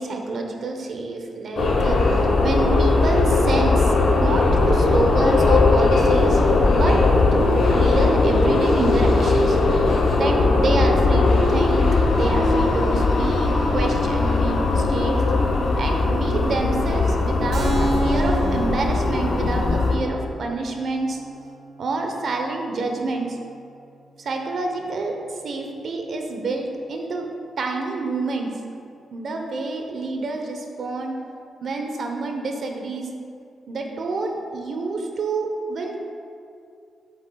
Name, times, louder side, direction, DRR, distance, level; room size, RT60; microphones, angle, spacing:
voice 1, 0.0-3.9 4.2-6.4 6.7-7.0 7.3-9.6 10.2-15.2 15.8-21.2 21.8-23.4 24.2-27.3 27.6-28.5 29.1-31.1 31.6-33.1 33.7-35.9, right 3 dB, 65° right, 3 dB, 0.9 m, -27 dB
sound 1, 1.6-20.0, left 3 dB, 70° left, 0.9 m, -19 dB
Keyboard (musical), 17.5-24.8, right 2 dB, 80° right, 1.5 m, -32 dB
7.9 x 7.2 x 2.3 m, 2.4 s
cardioid pair, 90°, 0 cm